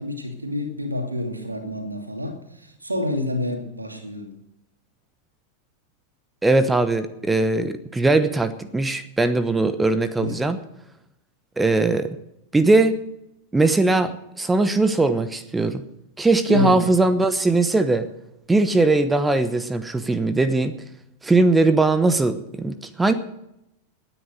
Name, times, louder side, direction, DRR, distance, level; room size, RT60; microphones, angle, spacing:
voice 1, 0.0-4.3 10.2-10.3 16.5-16.9, left 1 dB, 80° right, 4 dB, 2.6 m, -28 dB
voice 2, 6.4-10.6 11.6-12.2 12.5-13.0 13.5-14.1 14.4-15.8 16.2-18.1 18.5-20.7 21.2-23.1, right 2 dB, 10° right, 12 dB, 0.9 m, -20 dB
18.5 x 9.6 x 6.5 m, 0.84 s
figure-of-eight pair, 90°, 0 cm